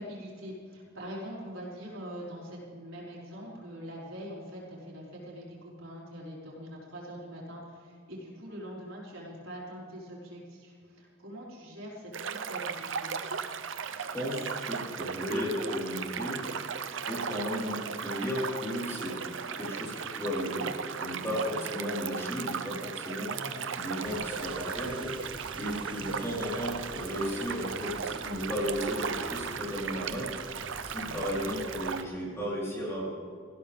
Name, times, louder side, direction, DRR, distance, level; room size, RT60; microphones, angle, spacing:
voice 1, 0.0-13.1 21.5-21.6 23.3-23.7 24.0-24.3 25.9-26.1 31.0-31.1, equal, 80° right, -5 dB, 4.9 m, -43 dB
sound 1, 12.1-32.0, right 6 dB, 65° right, 0.7 m, -36 dB
voice 2, 13.9-16.4 17.1-19.2 19.6-20.7 21.0-23.3 23.8-30.3 30.8-33.1, equal, 15° left, -6 dB, 4.4 m, -34 dB
sound 2, 24.0-31.9, right 2 dB, 25° right, 0.7 m, -48 dB
19.5 x 16.0 x 3.6 m, 2.3 s
head